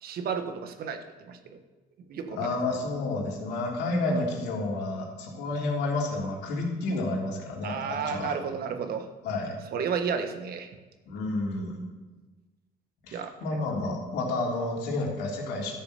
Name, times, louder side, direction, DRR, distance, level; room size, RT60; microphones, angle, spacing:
voice 1, 0.0-1.0 1.3-1.4 2.1-2.4 7.6-9.0 9.7-10.7 13.1-13.3, right 6 dB, 65° right, 7 dB, 1.4 m, -31 dB
voice 2, 2.3-8.3 9.2-9.6 11.0-11.9 13.0-15.7, left 2 dB, 80° left, -2 dB, 3.3 m, -30 dB
12.5 x 6.9 x 6.7 m, 1.3 s
cardioid pair, 110°, 17 cm